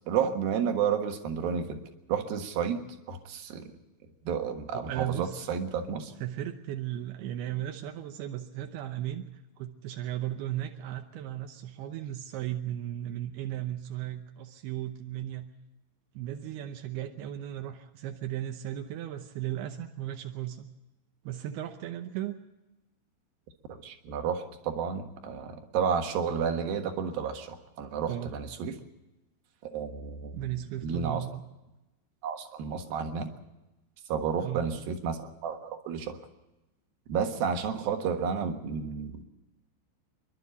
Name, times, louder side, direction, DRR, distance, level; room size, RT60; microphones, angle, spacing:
voice 1, 0.1-1.8 2.1-2.8 3.1-3.6 4.3-6.1 23.8-28.7 29.6-30.4 30.8-31.2 32.2-33.3 34.1-36.2 37.1-39.2, right 7 dB, 60° right, 5 dB, 2.7 m, -31 dB
voice 2, 4.7-5.5 6.2-9.2 9.6-15.5 16.1-20.7 21.2-22.4 28.1-28.3 30.3-31.4 34.4-34.7, right 12 dB, 80° right, 5 dB, 2.3 m, -36 dB
27.5 x 11.5 x 8.3 m, 0.98 s
omnidirectional pair, 5.7 m